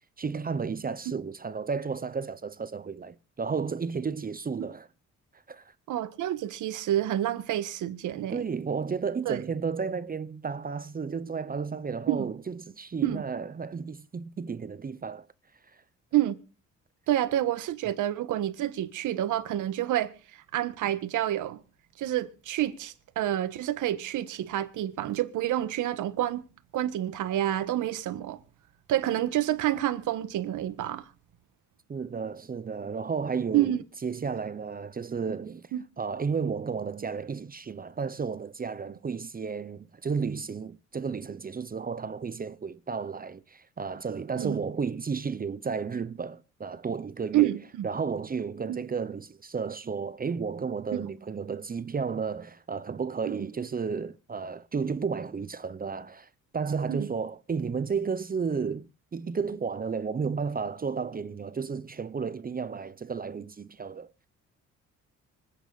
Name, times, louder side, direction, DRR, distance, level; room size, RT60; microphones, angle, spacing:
voice 1, 0.2-4.9 5.5-5.7 8.3-15.3 15.7-15.8 31.9-35.7 36.0-47.5 47.8-64.1, right 5 dB, 30° right, 0.8 m, -33 dB
voice 2, 5.9-8.4 9.3-9.4 12.1-12.3 13.0-13.2 16.1-16.4 17.1-20.1 20.5-21.6 22.0-26.4 26.7-28.4 28.9-31.0 33.5-33.8 35.7-35.8 44.3-44.6 47.3-47.9 48.7-48.8 50.9-51.1 53.3-53.5 56.9-57.1, right 13 dB, 85° right, 1.6 m, -28 dB
25.5 x 9.3 x 4.1 m
cardioid pair, 90°, 30 cm